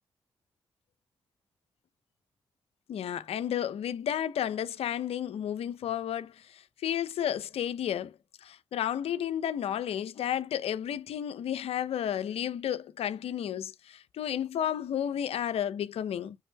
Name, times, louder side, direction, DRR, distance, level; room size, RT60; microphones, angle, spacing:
voice 1, 2.9-16.4, left 10 dB, 80° left, 0.6 m, -32 dB
9.2 x 3.4 x 3.3 m
supercardioid pair, 45°, 10 cm